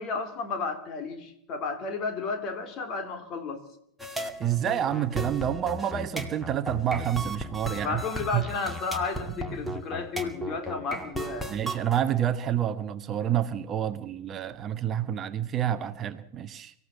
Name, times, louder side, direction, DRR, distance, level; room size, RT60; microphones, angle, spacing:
voice 1, 0.0-3.6 7.8-11.5, left 4 dB, 35° left, 8 dB, 3.7 m, -32 dB
sound 1, 4.0-12.0, equal, ahead, 2.3 m, -36 dB
voice 2, 4.4-8.1 8.3-8.5 9.5-9.8 11.5-16.7, right 10 dB, 25° right, 12 dB, 1.0 m, -28 dB
25.0 x 15.5 x 7.3 m, 0.71 s
figure-of-eight pair, 90°, 0 cm